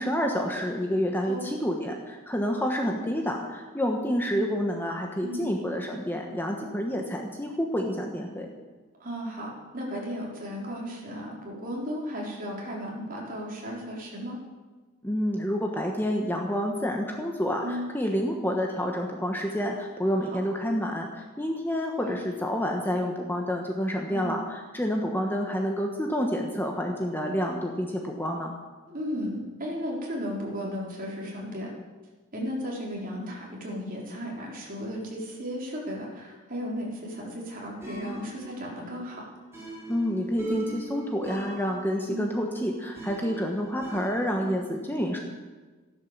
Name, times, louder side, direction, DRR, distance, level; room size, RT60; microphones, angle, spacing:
voice 1, 0.0-8.5 15.0-28.5 39.9-45.2, equal, 10° left, 1 dB, 1.2 m, -28 dB
voice 2, 1.3-1.6 5.2-5.5 9.0-14.4 17.6-17.9 22.0-22.2 24.1-24.4 28.9-31.7 32.3-39.2 42.1-42.2, equal, 40° right, -3 dB, 3.9 m, -35 dB
sound 1, 37.8-44.7, right 1 dB, 10° right, 5.3 m, -41 dB
14.5 x 11.0 x 7.3 m, 1.3 s
head